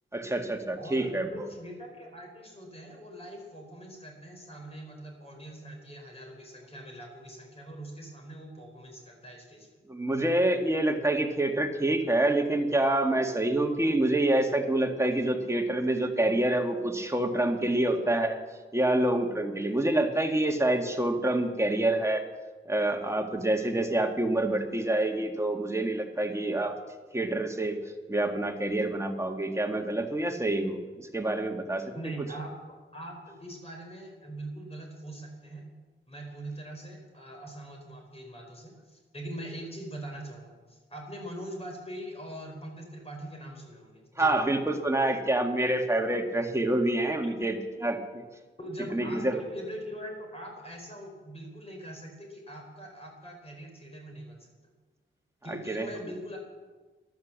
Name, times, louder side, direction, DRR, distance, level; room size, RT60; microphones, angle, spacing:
voice 1, 0.1-1.5 9.9-18.4 18.7-22.2 22.7-26.8 27.1-27.8 28.1-31.9 44.2-48.2 48.9-49.4 55.5-56.0, right 1 dB, 15° right, 3 dB, 1.9 m, -27 dB
voice 2, 0.8-9.7 31.9-35.6 36.1-44.4 48.6-54.5 55.4-56.4, right 1 dB, 30° left, 1 dB, 4.7 m, -42 dB
13.5 x 12.0 x 7.5 m, 1.3 s
cardioid pair, 85°, 20 cm